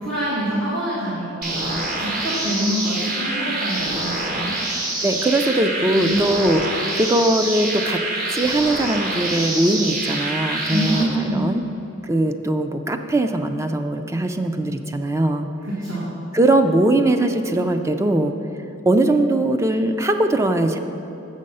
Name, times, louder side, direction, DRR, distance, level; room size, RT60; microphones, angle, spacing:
voice 1, 0.0-4.5 5.8-6.2 10.7-11.5 15.6-16.1, right 1 dB, 65° right, -7 dB, 1.5 m, -25 dB
sound 1, 1.4-11.0, right 2 dB, 45° right, 1.1 m, -26 dB
voice 2, 5.0-8.0 8.3-11.6 12.0-15.5 16.3-18.3 18.9-20.8, right 1 dB, 15° right, 7 dB, 0.3 m, -20 dB
7.1 x 6.4 x 5.4 m, 2.9 s
head